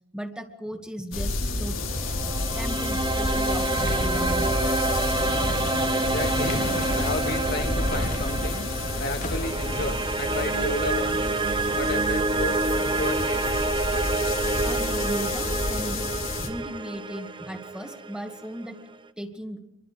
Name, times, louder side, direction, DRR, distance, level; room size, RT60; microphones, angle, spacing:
voice 1, 0.1-1.8 2.2-4.6 14.6-16.1 16.4-18.8 19.2-19.6, equal, 5° right, 4 dB, 2.1 m, -36 dB
sound 1, 1.1-16.5, left 2 dB, 90° left, 3.7 m, -30 dB
sound 2, 1.8-18.9, right 3 dB, 25° right, 0.9 m, -28 dB
sound 3, 3.8-9.8, left 1 dB, 40° left, 1.6 m, -37 dB
voice 2, 5.9-6.6 6.9-8.6 9.0-11.3 11.7-13.6, left 2 dB, 55° left, 4 dB, 2.0 m, -32 dB
27.0 x 22.5 x 4.9 m, 0.82 s
head